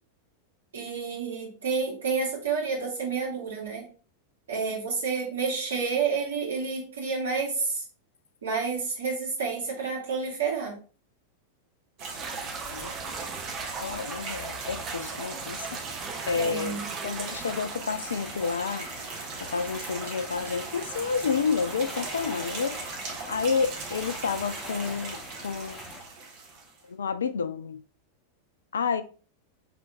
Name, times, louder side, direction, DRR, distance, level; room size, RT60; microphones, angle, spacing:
voice 1, 0.7-3.8 4.5-7.8 8.4-10.8 16.3-16.8, right 5 dB, 65° right, 2.0 m, -29 dB
sound 1, 12.0-26.8, right 4 dB, 40° right, 1.2 m, -39 dB
sound 2, 12.2-17.9, right 4 dB, 25° right, 0.6 m, -39 dB
voice 2, 13.8-15.8 16.3-18.9 19.4-23.0 23.3-25.8 26.9-27.8 28.7-29.0, left 5 dB, 70° left, 0.3 m, -30 dB
sound 3, 17.9-26.0, left 1 dB, 10° left, 1.0 m, -44 dB
4.8 x 3.4 x 2.8 m
figure-of-eight pair, 90°, 0 cm